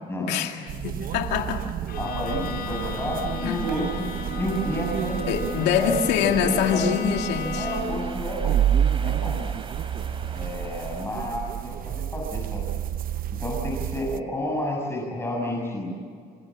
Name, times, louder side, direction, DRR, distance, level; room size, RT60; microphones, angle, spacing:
voice 1, 0.3-1.6 3.4-3.6 5.3-7.7, left 8 dB, 90° left, 3 dB, 2.4 m, -24 dB
sound 1, 0.7-14.2, right 10 dB, 55° right, 0.9 m, -29 dB
Bowed string instrument, 1.9-8.1, left 3 dB, 70° left, 5.3 m, -35 dB
voice 2, 2.0-3.9 4.4-5.3 5.8-6.8 7.6-8.6 9.0-9.4 10.3-12.7 13.4-15.9, left 1 dB, 15° left, -2 dB, 6.9 m, -31 dB
sound 2, 2.5-11.1, right 3 dB, 30° right, 4.2 m, -42 dB
28.5 x 26.0 x 7.3 m, 2.2 s
cardioid pair, 110°, 17 cm